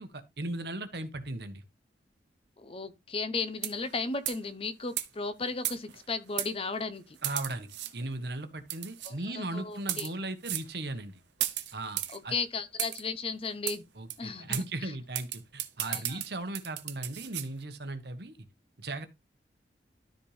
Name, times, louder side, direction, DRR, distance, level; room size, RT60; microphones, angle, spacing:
voice 1, 0.0-1.6 7.2-11.2 11.7-12.3 13.9-18.4 18.8-19.1, right 2 dB, 65° right, 1.3 m, -37 dB
voice 2, 2.6-7.2 9.1-10.1 12.1-13.8 14.2-14.9 15.8-16.2, left 4 dB, 30° left, 0.8 m, -35 dB
sound 1, 3.5-3.9 4.2-4.5 5.0-5.1 5.6-6.0 6.4-6.5 7.2-7.9 8.7-9.1 9.8-10.1 10.4-10.7 11.4-12.2 12.8-13.0 13.7-13.8 14.1-14.2 14.5-14.6 15.1-17.5, right 13 dB, 80° right, 0.9 m, -34 dB
13.0 x 4.4 x 3.4 m
head